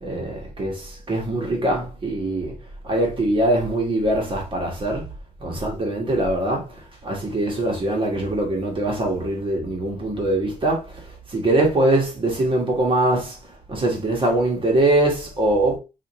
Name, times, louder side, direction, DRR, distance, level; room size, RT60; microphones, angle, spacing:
voice 1, 0.0-2.6 2.8-5.0 5.4-6.7 7.0-11.0 11.3-13.4 13.7-15.8, right 1 dB, 40° right, 1.5 m, -22 dB
4.9 x 2.6 x 3.0 m
cardioid pair, 75°, 14 cm